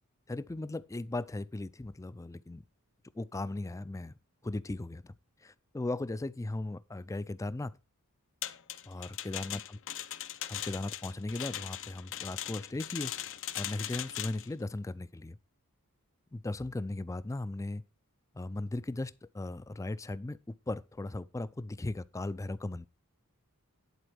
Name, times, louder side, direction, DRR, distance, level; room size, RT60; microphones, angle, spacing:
voice 1, 0.3-2.6 3.2-4.1 4.4-5.1 5.4-7.7 8.8-9.6 10.5-13.1 13.6-15.4 16.3-17.8 18.3-22.9, left 2 dB, 15° left, 0.4 m, -37 dB
sound 1, 8.4-14.5, left 12 dB, 60° left, 0.7 m, -39 dB
11.0 x 4.3 x 6.3 m
head